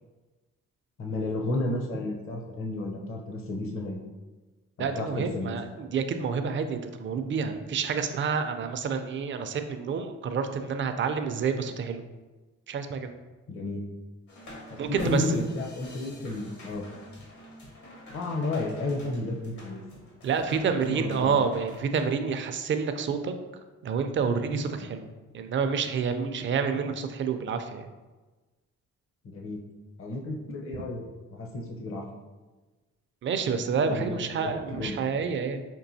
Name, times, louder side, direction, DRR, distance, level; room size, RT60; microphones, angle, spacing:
voice 1, 1.0-4.0 4.8-5.5 13.5-13.8 14.7-16.8 18.1-20.1 20.6-21.4 24.8-24.9 29.3-29.6 30.0-31.1 31.3-32.0 33.8-34.5 34.8-35.0, left 2 dB, 45° left, 1 dB, 0.7 m, -32 dB
voice 2, 4.8-12.0 12.7-13.1 14.8-15.4 20.2-23.3 23.8-27.9 33.2-35.7, right 6 dB, 40° right, 8 dB, 0.4 m, -28 dB
sound 1, 14.3-22.0, equal, 75° left, 1.3 m, -45 dB
5.3 x 2.6 x 2.7 m, 1.2 s
cardioid pair, 90°, 30 cm